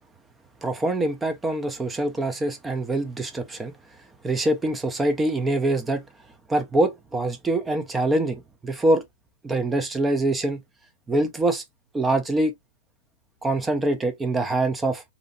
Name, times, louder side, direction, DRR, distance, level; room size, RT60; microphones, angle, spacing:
voice 1, 0.6-3.7 4.2-6.0 6.5-9.0 9.4-10.6 11.1-11.6 11.9-12.5 13.4-15.0, right 2 dB, 10° right, 0.5 m, -24 dB
2.8 x 2.6 x 2.6 m
hypercardioid pair, 165°, 0 cm